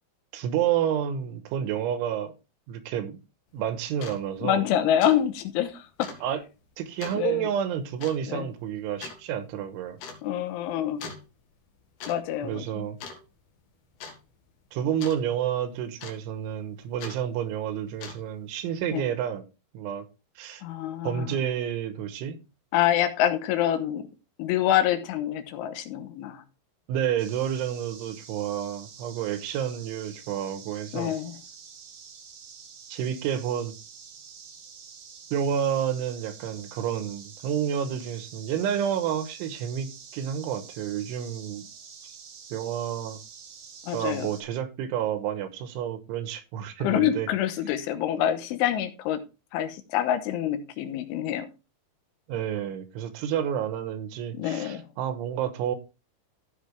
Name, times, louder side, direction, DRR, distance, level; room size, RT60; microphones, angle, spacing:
voice 1, 0.3-2.3 2.7-3.2 3.5-4.6 6.2-6.4 6.8-10.0 12.4-13.0 14.7-19.5 19.7-20.1 20.4-20.6 21.0-22.4 26.9-31.1 32.9-33.8 35.3-41.7 42.0-42.2 42.5-43.2 43.9-47.3 52.3-55.8, right 9 dB, 80° right, 3.4 m, -30 dB
sound 1, 3.5-3.6 3.9-4.2 4.6-4.7 5.0-5.2 5.5-5.6 6.0-6.2 7.0-7.2 8.0-8.2 9.0-9.2 10.0-10.2 11.0-11.3 11.8-12.2 12.4-12.7 13.0-13.5 14.0-14.2 15.0-15.2 16.0-16.4 17.0-17.2 17.8-18.4, left 5 dB, 65° left, 3.8 m, -40 dB
voice 2, 4.4-6.1 7.2-7.5 8.3-8.5 10.2-11.0 12.1-12.9 18.9-19.1 20.6-21.4 22.7-24.1 24.4-26.4 30.9-31.4 43.8-44.3 46.8-49.2 49.5-51.5 54.3-54.9, left 11 dB, 85° left, 3.4 m, -26 dB
sound 2, 27.2-44.4, right 6 dB, 60° right, 1.9 m, -47 dB
15.0 x 5.6 x 3.4 m
omnidirectional pair, 5.6 m